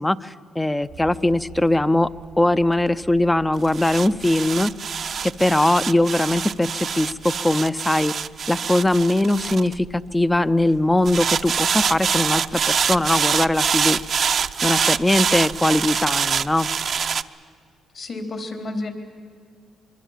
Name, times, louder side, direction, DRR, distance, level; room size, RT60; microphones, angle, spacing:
voice 1, 0.0-2.1 2.4-4.7 5.2-8.1 8.5-14.0 14.6-16.7, left 1 dB, 10° left, 15 dB, 0.6 m, -20 dB
sound 1, 0.9-10.4 11.1-17.2, right 7 dB, 50° right, 0.6 m, -25 dB
voice 2, 17.9-18.9, left 2 dB, 50° left, 4 dB, 3.8 m, -30 dB
24.0 x 23.5 x 7.5 m, 2.1 s
cardioid pair, 90°, 0 cm